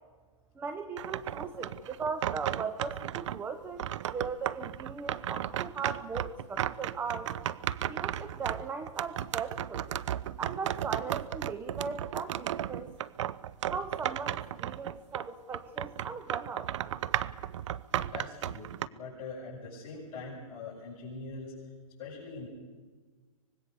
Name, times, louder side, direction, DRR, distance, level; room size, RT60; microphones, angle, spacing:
voice 1, 0.6-3.8 4.1-7.3 7.9-9.9 10.4-12.9 13.7-16.7, right 5 dB, 10° right, 11 dB, 0.8 m, -38 dB
sound 1, 1.0-3.4 3.8-15.3 15.5-18.9, right 11 dB, 55° right, 0.7 m, -34 dB
voice 2, 18.1-21.5 22.0-22.5, left 3 dB, 30° left, -7 dB, 6.9 m, -43 dB
24.5 x 20.0 x 6.8 m, 1.4 s
hypercardioid pair, 145°, 18 cm